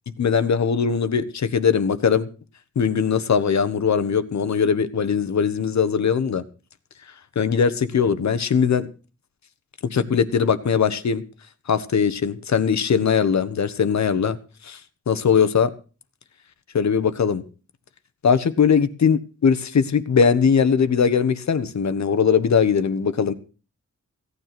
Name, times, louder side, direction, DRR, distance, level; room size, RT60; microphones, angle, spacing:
voice 1, 0.2-2.3 2.7-6.4 7.3-8.9 9.9-11.2 11.7-14.4 14.6-14.8 15.1-15.7 16.7-17.4 18.2-23.3, left 6 dB, 65° left, 1.2 m, -20 dB
16.5 x 9.7 x 6.0 m
wide cardioid pair, 165°, 30 cm